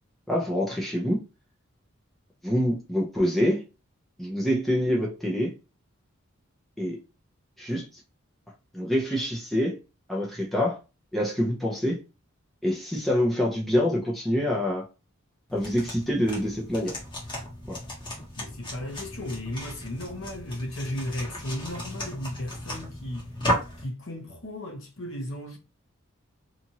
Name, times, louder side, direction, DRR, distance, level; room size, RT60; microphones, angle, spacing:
voice 1, 0.3-1.2 2.4-3.6 4.2-5.5 6.8-7.0 7.6-7.9 8.7-9.8 10.1-10.8 11.1-12.0 12.6-14.8 15.5-17.0 17.7-17.8, equal, ahead, 0.6 m, -26 dB
sound 1, 15.5-23.8, equal, 20° left, 0.9 m, -35 dB
voice 2, 18.4-23.2 23.8-25.6, left 1 dB, 65° left, 0.9 m, -35 dB
2.9 x 2.5 x 2.8 m
head